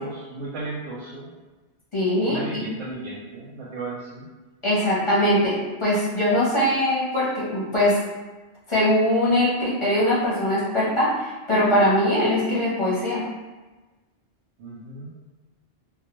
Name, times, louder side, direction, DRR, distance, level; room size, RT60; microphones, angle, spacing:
voice 1, 0.0-1.3 2.2-4.3 14.6-15.1, right 2 dB, 85° right, -6 dB, 0.9 m, -34 dB
voice 2, 1.9-2.6 4.6-8.0 8.7-13.2, left 1 dB, 30° left, -9 dB, 0.6 m, -21 dB
2.3 x 2.2 x 3.0 m, 1.2 s
omnidirectional pair, 1.2 m